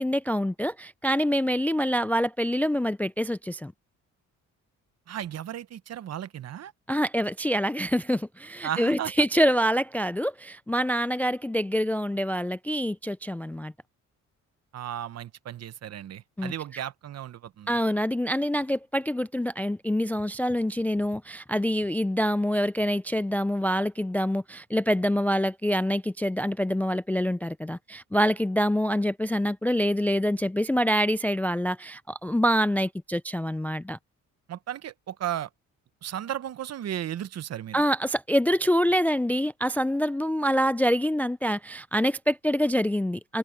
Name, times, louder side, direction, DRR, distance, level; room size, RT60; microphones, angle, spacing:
voice 1, 0.0-3.7 6.9-13.7 16.4-16.8 17.7-34.0 37.7-43.4, equal, 5° left, 0.3 m, -26 dB
voice 2, 5.1-6.7 8.6-9.1 14.7-17.8 34.5-35.5 36.0-37.8, right 11 dB, 55° right, 0.9 m, -35 dB
cardioid pair, 90°, 30 cm